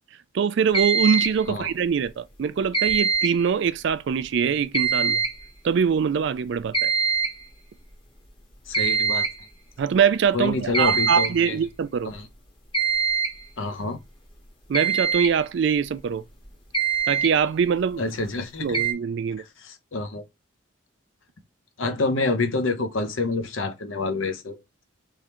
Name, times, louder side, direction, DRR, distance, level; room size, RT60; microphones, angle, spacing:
voice 1, 0.3-5.2 5.6-6.9 9.8-12.1 14.7-16.2 17.1-18.0 18.6-19.4, right 6 dB, 60° right, 0.3 m, -23 dB
sound 1, 0.7-1.4 2.7-3.4 4.7-5.4 6.7-7.4 8.7-9.4 10.7-11.4 12.7-13.4 14.7-15.3 16.4-16.5 16.7-17.3 18.7-18.9, right 6 dB, 25° left, 1.0 m, -23 dB
voice 2, 8.7-9.3 10.3-11.6 12.0-12.3 13.6-14.0 18.0-18.8 19.6-20.2 21.8-24.6, left 3 dB, 75° left, 0.8 m, -27 dB
3.7 x 3.2 x 2.9 m
head